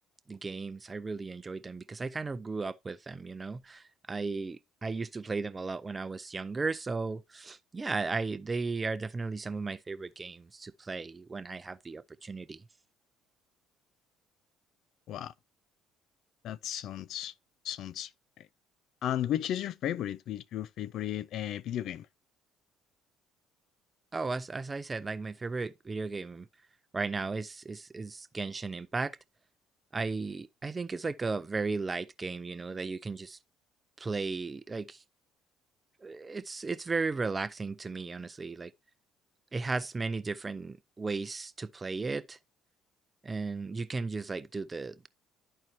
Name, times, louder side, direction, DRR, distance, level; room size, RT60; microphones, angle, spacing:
voice 1, 0.3-12.6 24.1-26.5 26.9-29.2 29.9-33.4 34.0-35.0 36.0-38.7 39.5-42.4 43.2-45.1, right 4 dB, 25° right, 0.5 m, -35 dB
voice 2, 16.4-17.3 17.6-18.1 18.4-18.5 19.0-22.1, left 11 dB, 65° left, 0.3 m, -34 dB
12.0 x 4.4 x 3.0 m
supercardioid pair, 85°, 0 cm